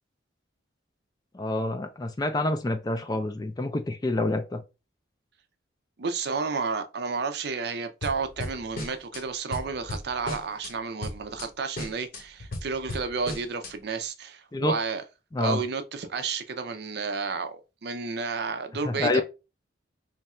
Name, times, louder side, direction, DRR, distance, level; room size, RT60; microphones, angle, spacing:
voice 1, 1.3-4.6 14.5-14.8 15.3-15.6 18.8-19.2, left 2 dB, 20° left, 0.4 m, -27 dB
voice 2, 6.0-15.0 15.4-19.2, right 4 dB, 55° right, 0.5 m, -31 dB
sound 1, 8.0-9.2 9.5-10.7 11.0-11.5 11.8-13.7, left 1 dB, 50° left, 0.8 m, -36 dB
3.2 x 2.4 x 4.2 m
head